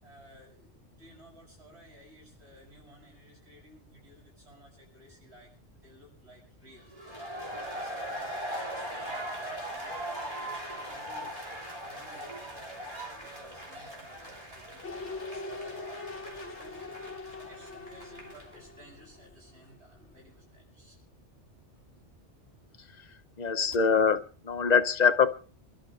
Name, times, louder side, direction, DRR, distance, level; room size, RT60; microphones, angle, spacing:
voice 1, 0.0-21.0, equal, 70° right, -3 dB, 7.8 m, -55 dB
sound 1, 6.9-18.6, right 1 dB, 30° right, 3.2 m, -40 dB
sound 2, 14.8-19.8 20.1-20.2, left 3 dB, 85° left, 1.8 m, -42 dB
voice 2, 23.4-24.2 24.4-25.3, left 6 dB, 40° left, 9 dB, 1.0 m, -23 dB
28.5 x 11.5 x 2.6 m, 0.37 s
omnidirectional pair, 1.2 m